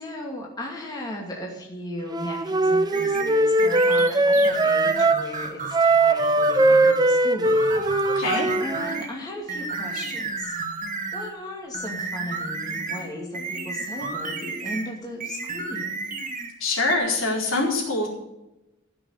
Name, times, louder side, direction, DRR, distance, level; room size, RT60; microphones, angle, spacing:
voice 1, 0.0-7.8 8.1-8.2 8.6-10.6 11.1-16.0, left 1 dB, 20° left, -2 dB, 2.4 m, -36 dB
Wind instrument woodwind instrument, 2.1-5.2 5.7-9.0, right 2 dB, 20° right, 0.8 m, -20 dB
sound 1, 2.9-5.8 6.2-7.1 7.4-9.1 9.5-11.4 11.7-14.9 15.2-16.5 16.9-17.0, right 4 dB, 40° right, 1.8 m, -32 dB
voice 2, 8.0-8.5 16.6-18.1, left 2 dB, 70° left, -2 dB, 4.5 m, -24 dB
15.5 x 6.3 x 8.2 m, 0.95 s
head